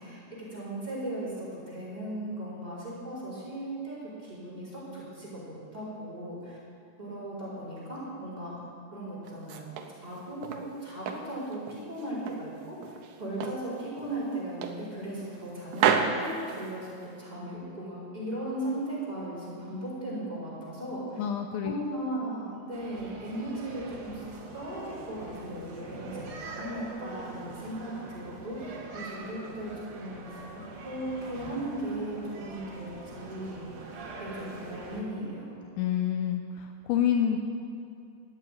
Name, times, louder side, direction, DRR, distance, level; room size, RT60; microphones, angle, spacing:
voice 1, 0.0-5.4 5.7-6.6 7.0-8.6 8.9-9.7 10.0-21.2 21.6-24.2 24.5-33.8 34.2-35.5, right 1 dB, 10° right, -8 dB, 4.2 m, -37 dB
sound 1, 9.2-10.7 11.1-12.5 12.8-13.7 14.0-14.2 14.6-15.4 15.7-17.2, right 7 dB, 75° right, 2.0 m, -31 dB
voice 2, 21.2-22.0 35.8-37.4, left 9 dB, 80° left, 5 dB, 2.4 m, -28 dB
sound 2, 22.7-35.0, right 3 dB, 55° right, 3.4 m, -43 dB
13.5 x 8.9 x 9.2 m, 2.5 s
omnidirectional pair, 4.5 m